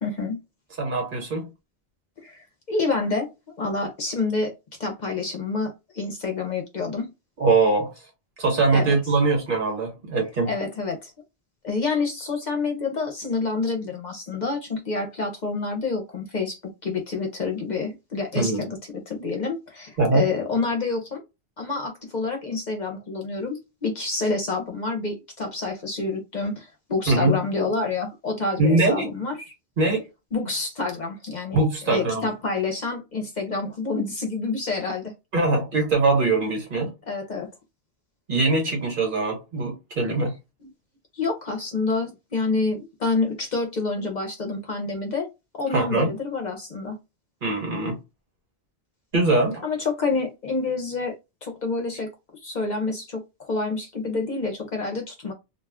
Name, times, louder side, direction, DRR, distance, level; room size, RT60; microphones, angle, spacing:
voice 1, 0.0-0.4 2.2-3.3 3.6-4.5 4.8-7.1 8.7-9.0 10.4-11.1 11.6-18.8 19.1-21.2 21.6-29.5 30.3-35.1 37.1-37.5 41.1-45.3 45.5-47.0 49.6-51.1 51.4-52.1 52.4-55.3, left 3 dB, 50° left, 0.7 m, -28 dB
voice 2, 0.8-1.5 7.4-7.9 8.4-10.5 18.3-18.7 20.0-20.3 27.1-27.4 28.6-29.1 29.8-30.0 31.5-32.3 35.3-36.9 38.3-40.3 45.7-46.1 47.4-48.0 49.1-49.6, right 3 dB, 55° right, 1.3 m, -22 dB
2.3 x 2.3 x 3.4 m
omnidirectional pair, 1.0 m